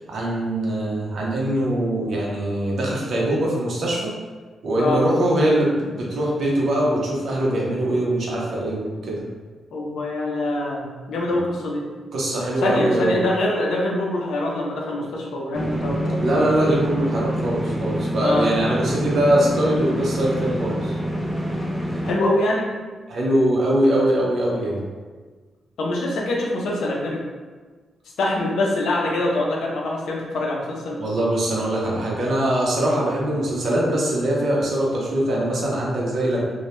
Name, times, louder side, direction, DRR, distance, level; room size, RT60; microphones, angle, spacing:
voice 1, 0.0-4.1 4.6-9.2 11.3-11.4 12.1-13.2 16.2-21.0 23.1-24.8 31.0-36.4, right 1 dB, 60° right, -4 dB, 0.6 m, -22 dB
voice 2, 9.7-11.8 12.6-16.4 18.2-18.5 22.0-22.6 25.8-27.2 28.2-31.0, left 2 dB, 90° left, -2 dB, 0.5 m, -24 dB
sound 1, 15.5-22.1, equal, 5° right, 0.3 m, -26 dB
2.1 x 2.1 x 2.9 m, 1.4 s
wide cardioid pair, 135°, 0 cm